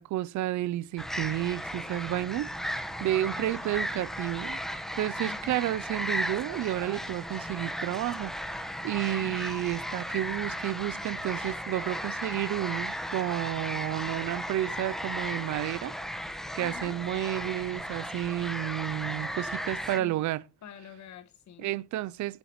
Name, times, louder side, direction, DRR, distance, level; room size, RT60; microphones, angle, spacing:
voice 1, 0.0-4.6 4.9-16.0 16.5-20.4 21.6-22.4, right 14 dB, 70° right, 0.5 m, -31 dB
sound 1, 1.0-20.0, equal, ahead, 1.2 m, -35 dB
voice 2, 5.2-5.6 9.1-9.5 16.6-17.0 19.8-20.2 20.6-21.8, left 7 dB, 65° left, 1.4 m, -47 dB
17.0 x 8.0 x 3.1 m
cardioid pair, 90°, 30 cm